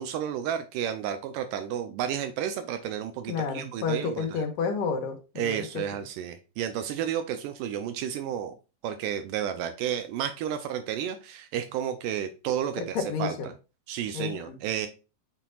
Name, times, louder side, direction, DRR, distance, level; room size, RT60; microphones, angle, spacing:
voice 1, 0.0-4.4 5.4-8.5 8.8-13.3 13.9-14.9, right 9 dB, 85° right, 2.2 m, -32 dB
voice 2, 3.3-5.7 13.1-13.5 14.1-14.6, left 5 dB, 80° left, 2.7 m, -30 dB
9.0 x 4.4 x 2.3 m
omnidirectional pair, 3.8 m